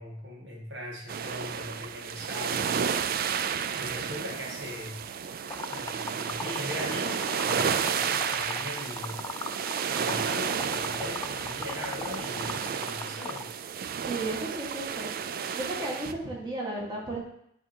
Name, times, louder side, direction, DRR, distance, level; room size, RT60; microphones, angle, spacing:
voice 1, 0.0-3.0 3.7-5.0 5.7-9.2 9.9-13.5, left 1 dB, 70° right, -2 dB, 1.9 m, -39 dB
sound 1, 1.1-16.1, right 7 dB, 55° right, 0.4 m, -32 dB
Liquid, 5.5-13.5, left 4 dB, 20° left, 0.3 m, -39 dB
voice 2, 14.0-15.1 15.5-17.2, right 2 dB, 25° right, -4 dB, 1.8 m, -34 dB
10.0 x 3.6 x 4.5 m, 0.74 s
head